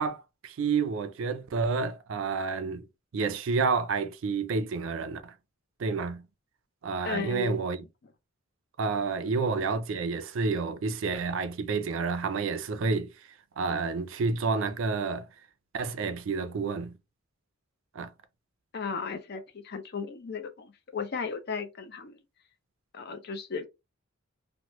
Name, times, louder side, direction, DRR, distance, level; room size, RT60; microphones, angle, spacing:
voice 1, 0.0-2.8 3.1-5.3 5.8-6.2 6.8-7.8 8.8-13.1 13.6-15.3 15.7-16.9 17.9-18.1, right 4 dB, 65° right, 0.4 m, -29 dB
voice 2, 7.0-7.7 18.7-22.2 22.9-23.6, left 5 dB, 50° left, 0.5 m, -35 dB
3.0 x 2.1 x 2.9 m
head